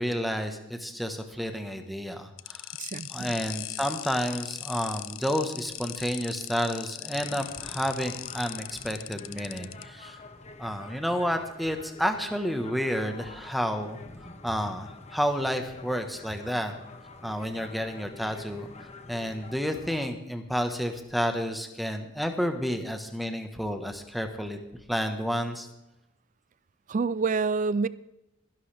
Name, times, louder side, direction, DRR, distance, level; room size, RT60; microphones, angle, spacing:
voice 1, 0.0-2.7 3.1-10.2 10.6-14.0 14.4-16.7 17.2-18.7 19.1-24.6 24.9-25.7, equal, ahead, 1.3 m, -30 dB
sound 1, 2.4-9.8, left 17 dB, 75° left, 0.4 m, -39 dB
voice 2, 2.8-3.3 26.9-27.9, right 4 dB, 40° right, 0.4 m, -27 dB
sound 2, 7.1-20.1, left 2 dB, 35° left, 1.2 m, -47 dB
23.5 x 11.5 x 3.5 m
head